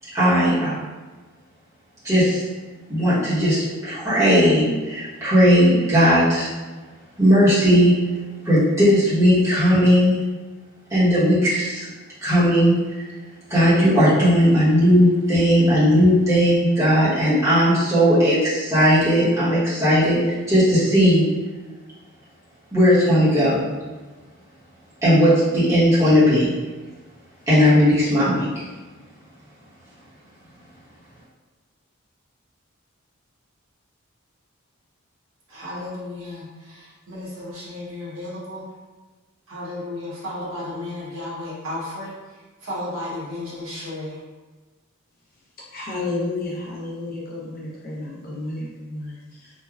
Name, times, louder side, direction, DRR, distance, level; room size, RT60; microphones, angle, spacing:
voice 1, 0.1-0.8 2.0-2.4 2.9-6.5 7.2-7.9 8.4-10.2 10.9-11.8 12.2-13.0 13.5-21.2 22.7-23.6 25.0-26.5 27.5-28.5, equal, 15° right, -12 dB, 1.0 m, -17 dB
voice 2, 35.5-36.5 37.1-38.6 39.5-42.1 42.6-44.1, left 1 dB, 70° right, -7 dB, 1.0 m, -33 dB
voice 3, 45.7-49.5, left 2 dB, 40° left, -5 dB, 0.7 m, -31 dB
3.2 x 2.2 x 2.3 m, 1.3 s
head